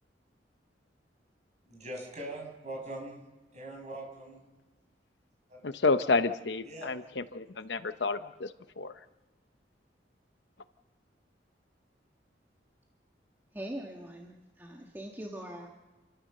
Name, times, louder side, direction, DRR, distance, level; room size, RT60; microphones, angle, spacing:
voice 1, 1.7-3.2 3.5-4.4 5.5-5.6 6.6-6.9, right 1 dB, 40° right, 1 dB, 6.0 m, -42 dB
voice 2, 5.6-9.0, left 3 dB, 70° left, 11 dB, 0.9 m, -30 dB
voice 3, 13.5-15.7, right 1 dB, 10° right, 0 dB, 1.7 m, -42 dB
28.5 x 14.0 x 6.7 m, 1.2 s
head